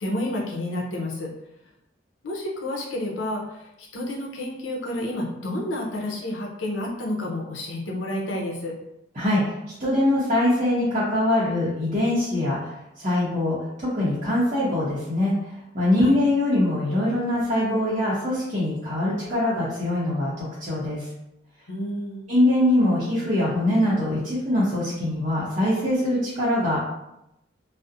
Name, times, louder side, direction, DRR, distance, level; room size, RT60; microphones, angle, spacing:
voice 1, 0.0-1.3 2.2-8.7 16.0-16.2 21.7-22.3, left 1 dB, 85° left, -1 dB, 0.6 m, -30 dB
voice 2, 9.2-12.7 13.0-15.3 15.7-21.1 22.3-26.8, left 1 dB, 40° right, -10 dB, 0.6 m, -23 dB
2.4 x 2.0 x 2.6 m, 0.86 s
head